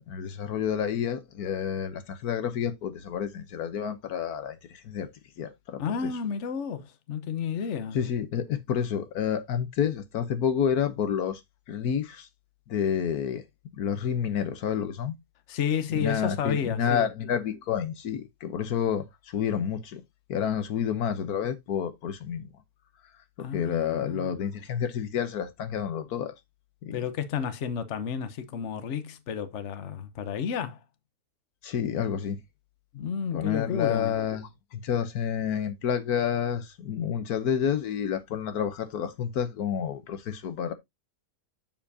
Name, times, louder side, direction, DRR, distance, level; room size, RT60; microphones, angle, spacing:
voice 1, 0.0-5.1 5.4-6.1 7.9-11.4 11.7-12.3 12.7-13.4 13.8-15.2 15.9-20.0 20.3-22.5 23.4-26.3 26.8-27.0 31.6-32.4 33.3-40.7, left 8 dB, 80° left, 1.4 m, -29 dB
voice 2, 5.8-8.0 15.5-17.1 23.4-24.3 26.9-30.8 32.9-34.2, left 7 dB, 55° left, 1.2 m, -31 dB
7.4 x 7.2 x 2.7 m
omnidirectional pair, 1.6 m